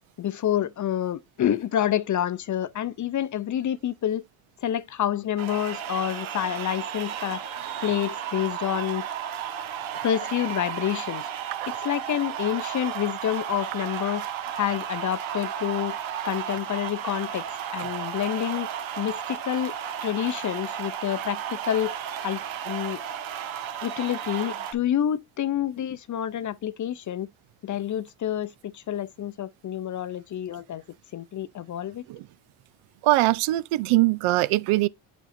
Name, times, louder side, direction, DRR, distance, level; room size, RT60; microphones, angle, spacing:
voice 1, 0.2-4.2 4.6-7.4 7.8-9.0 10.0-11.3 11.7-14.2 14.6-16.0 16.2-18.7 19.0-19.7 20.0-21.9 22.2-23.0 23.8-27.3 27.6-30.8 31.1-32.0, left 10 dB, 40° left, 0.5 m, -28 dB
sound 1, 5.4-24.7, right 9 dB, 70° right, 1.5 m, -33 dB
voice 2, 33.0-34.9, right 18 dB, 90° right, 0.6 m, -22 dB
9.1 x 5.4 x 2.6 m
cardioid pair, 110°, 49 cm